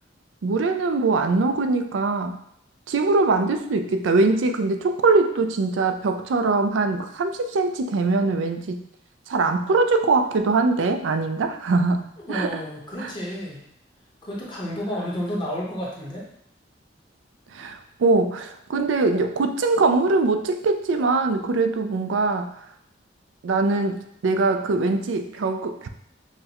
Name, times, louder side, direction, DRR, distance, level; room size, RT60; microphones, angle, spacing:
voice 1, 0.4-2.4 2.9-8.8 9.3-12.0 12.3-12.6 13.0-13.1 17.5-22.5 23.4-25.9, right 3 dB, 85° right, 7 dB, 0.4 m, -22 dB
voice 2, 12.2-13.6 14.2-16.3, equal, 25° left, -5 dB, 1.0 m, -31 dB
5.7 x 2.1 x 2.9 m, 0.72 s
head